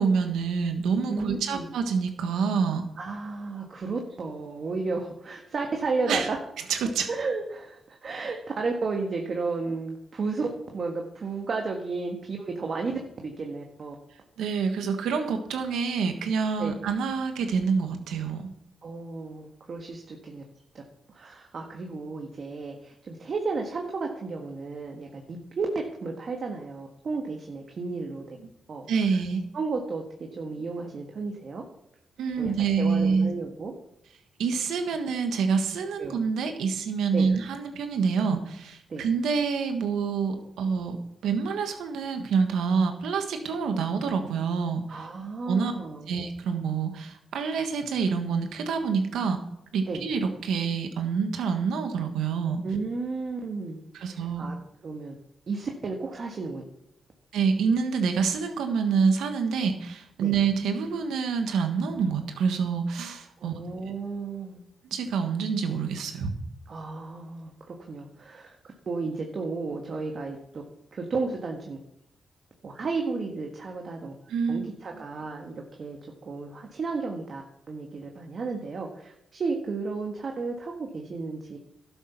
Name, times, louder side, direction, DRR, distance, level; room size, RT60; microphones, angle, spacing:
voice 1, 0.0-2.8 6.1-6.3 6.7-7.1 14.4-18.5 28.9-29.4 32.2-33.3 34.4-41.0 41.2-45.1 45.5-45.7 46.1-49.4 49.7-52.6 53.9-54.5 57.3-63.5 64.8-66.3 74.3-74.7, right 5 dB, 80° right, 6 dB, 1.4 m, -27 dB
voice 2, 1.1-1.7 3.0-6.4 7.1-13.9 16.6-16.8 18.8-20.4 20.7-20.8 21.1-28.4 28.7-28.9 29.5-31.6 32.4-33.7 36.0-36.2 37.1-37.3 38.9-39.0 44.9-46.1 49.8-50.0 52.6-54.6 54.8-55.1 55.5-56.6 60.2-60.3 63.4-64.6 66.7-68.5 68.9-70.6 70.9-71.8 72.6-74.1 74.5-81.6, right 4 dB, 55° right, 2 dB, 1.5 m, -33 dB
12.0 x 7.3 x 5.9 m, 0.80 s
supercardioid pair, 55°, 0 cm